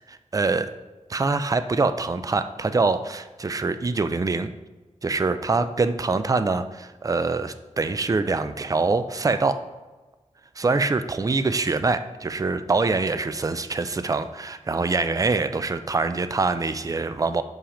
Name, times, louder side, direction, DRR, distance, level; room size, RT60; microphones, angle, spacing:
voice 1, 0.1-0.7 1.1-4.5 5.0-9.6 10.6-17.4, right 3 dB, 30° right, 11 dB, 0.4 m, -24 dB
5.7 x 5.6 x 5.0 m, 1.2 s
wide cardioid pair, 105°, 12 cm